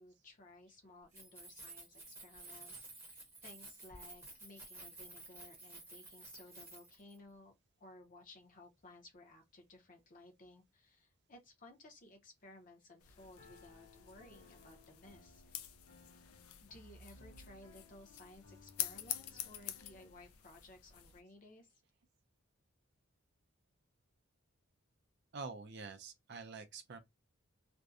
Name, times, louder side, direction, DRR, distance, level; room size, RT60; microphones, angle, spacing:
voice 1, 0.0-7.5 7.8-15.4 16.6-21.7, left 2 dB, 35° left, 0.6 m, -58 dB
Keys jangling, 1.0-7.2, right 3 dB, 10° right, 0.7 m, -53 dB
sound 1, 13.0-21.2, left 11 dB, 85° left, 0.4 m, -47 dB
Piano, 13.4-20.2, left 2 dB, 55° left, 0.9 m, -62 dB
voice 2, 25.3-27.0, right 4 dB, 50° right, 0.4 m, -47 dB
2.6 x 2.0 x 2.3 m
head